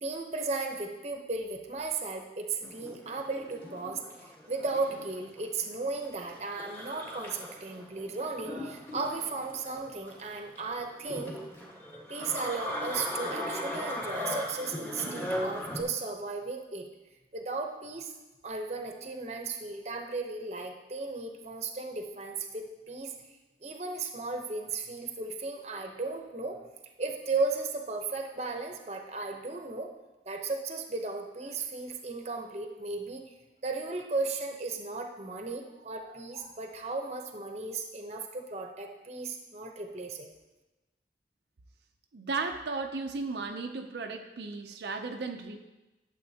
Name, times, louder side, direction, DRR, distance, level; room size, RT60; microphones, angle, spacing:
voice 1, 0.0-4.0 4.5-11.4 12.1-16.9 17.3-18.1 18.4-23.1 23.6-26.6 27.0-29.9 30.3-33.3 33.6-40.3, right 3 dB, 40° right, 3 dB, 0.8 m, -35 dB
sound 1, 2.6-15.8, left 1 dB, 10° left, 1.4 m, -38 dB
voice 2, 42.1-45.7, right 4 dB, 75° right, 4 dB, 0.5 m, -35 dB
12.0 x 7.2 x 2.8 m, 1.1 s
head